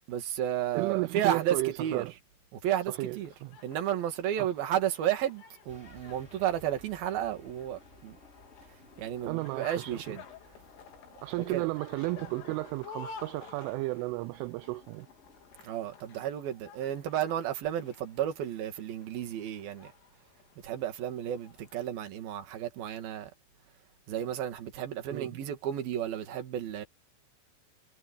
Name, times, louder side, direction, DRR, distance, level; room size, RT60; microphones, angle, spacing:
voice 1, 0.1-2.0 2.5-3.3 3.6-8.2 9.0-10.2 11.5-11.7 15.6-19.9 20.6-23.3 24.1-26.9, right 11 dB, 55° right, 3.4 m, -32 dB
voice 2, 0.8-2.1 2.9-3.5 4.4-4.5 9.3-10.0 11.2-15.1 25.1-25.4, right 22 dB, 85° right, 2.9 m, -33 dB
sound 1, 2.7-21.9, left 5 dB, 70° left, 5.7 m, -52 dB
sound 2, 5.7-15.6, left 1 dB, 10° left, 5.3 m, -59 dB
omnidirectional pair, 6.0 m